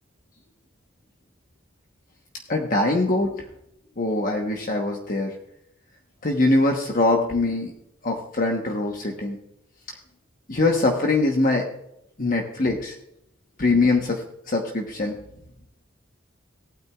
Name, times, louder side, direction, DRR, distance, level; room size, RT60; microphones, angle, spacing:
voice 1, 2.5-3.5 4.0-5.3 6.2-7.7 8.0-9.4 10.5-11.7 12.2-12.9 13.6-15.1, left 2 dB, 45° left, 1 dB, 1.1 m, -23 dB
18.0 x 9.1 x 2.4 m, 0.79 s
head